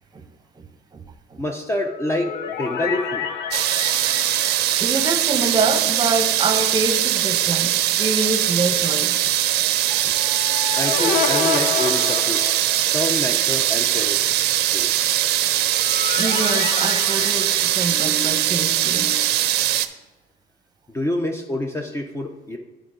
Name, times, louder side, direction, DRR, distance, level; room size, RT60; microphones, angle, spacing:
voice 1, 1.4-3.3 9.9-10.1 10.8-12.4 12.8-14.2 14.7-14.9 20.9-22.6, left 1 dB, 15° left, 3 dB, 0.5 m, -27 dB
sound 1, 1.8-6.1 6.4-6.5 10.0-13.1 15.2-18.6, left 8 dB, 85° left, 0.7 m, -30 dB
sound 2, 3.5-19.9, right 13 dB, 75° right, 0.5 m, -21 dB
voice 2, 4.8-9.3 10.0-10.1 16.1-19.3, right 3 dB, 25° right, 7 dB, 0.9 m, -26 dB
9.1 x 3.8 x 5.0 m, 1.1 s
cardioid pair, 110°, 17 cm